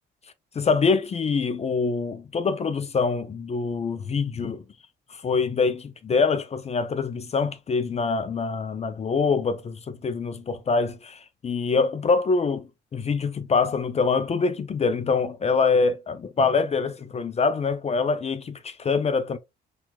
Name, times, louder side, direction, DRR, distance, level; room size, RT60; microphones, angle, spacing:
voice 1, 0.6-4.6 5.1-19.4, left 4 dB, 35° left, 0.4 m, -25 dB
4.3 x 2.4 x 2.2 m
cardioid pair, 90°, 20 cm